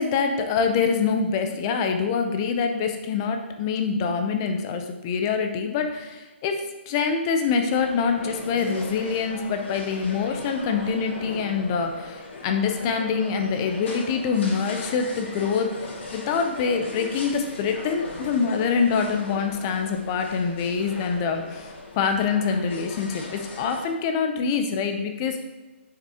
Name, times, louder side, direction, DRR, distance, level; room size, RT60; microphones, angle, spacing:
voice 1, 0.0-6.6 6.9-25.4, left 5 dB, 20° left, 5 dB, 0.5 m, -25 dB
sound 1, 7.7-23.8, left 2 dB, 75° left, 2.1 m, -39 dB
8.7 x 6.1 x 2.8 m, 1.2 s
hypercardioid pair, 170°, 7 cm